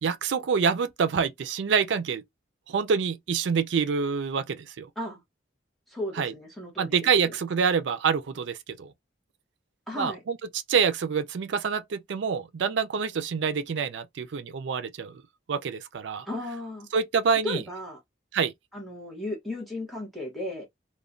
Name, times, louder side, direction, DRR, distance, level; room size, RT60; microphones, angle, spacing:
voice 1, 0.0-2.2 2.7-4.9 6.2-6.3 6.8-8.9 9.9-10.4 10.7-15.2 15.5-16.3 16.9-17.6 18.3-18.5, right 6 dB, 75° right, 0.4 m, -26 dB
voice 2, 5.9-7.0 7.2-7.4 9.9-10.2 16.3-16.9 17.4-18.0 18.7-20.7, left 1 dB, ahead, 0.8 m, -35 dB
3.0 x 2.1 x 2.5 m
head